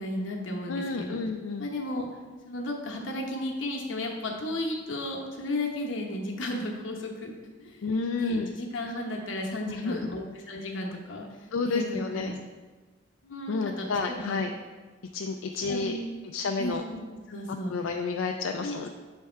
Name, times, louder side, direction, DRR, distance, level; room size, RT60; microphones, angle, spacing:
voice 1, 0.0-1.2 1.6-2.1 2.4-7.3 7.6-7.9 8.2-11.3 11.6-11.8 12.1-12.3 13.2-14.4 15.7-16.3 16.6-17.0 17.3-17.7 18.6-18.9, left 1 dB, 70° left, 0 dB, 1.0 m, -34 dB
voice 2, 0.7-1.7 7.8-8.5 9.6-10.1 11.5-12.3 13.5-14.5 15.1-16.0 16.3-16.8 17.7-18.9, left 4 dB, 85° left, 4 dB, 0.4 m, -30 dB
7.4 x 3.5 x 4.4 m, 1.3 s
head